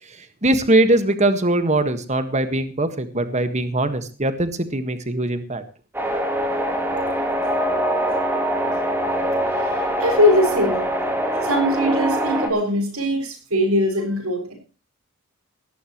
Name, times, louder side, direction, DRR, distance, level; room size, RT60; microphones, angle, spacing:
voice 1, 0.1-5.6, right 1 dB, 30° right, 1.7 m, -21 dB
sound 1, 5.9-12.5, right 1 dB, 10° right, 3.6 m, -23 dB
voice 2, 9.6-10.9 11.4-14.5, left 1 dB, 80° right, 7.0 m, -21 dB
18.0 x 15.0 x 3.1 m
head